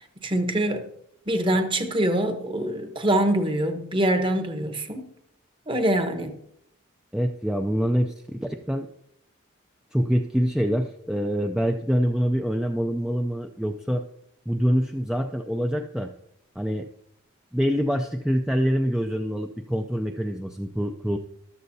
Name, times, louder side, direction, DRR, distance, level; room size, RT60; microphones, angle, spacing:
voice 1, 0.2-0.9 1.3-5.1 5.7-6.4, right 1 dB, 25° right, 1.1 m, -24 dB
voice 2, 7.1-8.9 9.9-14.0 14.5-16.1 16.6-16.9 17.5-21.2, equal, 5° right, 0.4 m, -25 dB
14.0 x 12.0 x 2.8 m
head